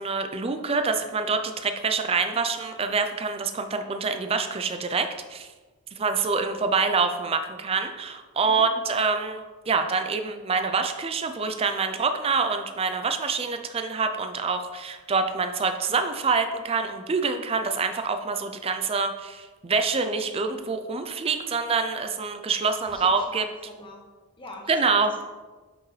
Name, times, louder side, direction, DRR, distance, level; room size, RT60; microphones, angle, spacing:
voice 1, 0.0-5.5 5.9-23.4 24.7-25.2, right 4 dB, 25° right, 7 dB, 0.4 m, -26 dB
voice 2, 22.8-24.0 24.4-25.2, left 1 dB, 20° left, 0 dB, 1.2 m, -44 dB
8.1 x 6.0 x 3.2 m, 1.3 s
head